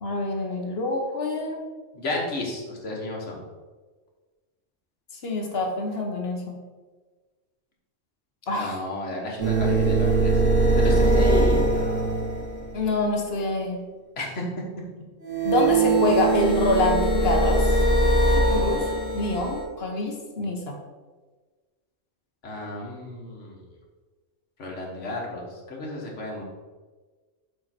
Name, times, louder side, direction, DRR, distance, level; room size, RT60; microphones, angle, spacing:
voice 1, 0.0-1.6 5.2-6.5 8.5-8.8 12.7-13.8 15.4-17.7 18.5-20.8, left 2 dB, 55° left, 2 dB, 1.3 m, -26 dB
voice 2, 1.9-3.4 8.5-10.3 10.8-12.1 14.2-14.4 22.4-23.7 24.6-26.4, left 2 dB, 75° left, -2 dB, 1.8 m, -32 dB
sound 1, 9.4-12.9 15.2-19.6, right 2 dB, 90° right, 2.7 m, -21 dB
7.4 x 4.7 x 4.4 m, 1.3 s
omnidirectional pair, 1.3 m